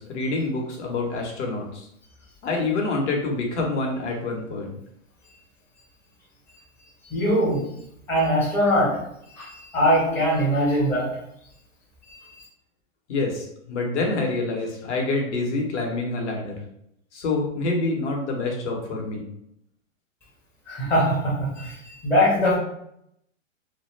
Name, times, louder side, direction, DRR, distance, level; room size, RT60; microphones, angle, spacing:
voice 1, 0.0-1.9 2.4-4.7 13.1-16.6 17.1-19.3, left 3 dB, 60° left, 0 dB, 0.9 m, -27 dB
voice 2, 7.1-7.7 8.1-9.0 9.3-11.2 12.1-12.5 20.7-22.6, equal, 5° left, -7 dB, 0.5 m, -22 dB
2.2 x 2.1 x 3.1 m, 0.75 s
hypercardioid pair, 125°, 40 cm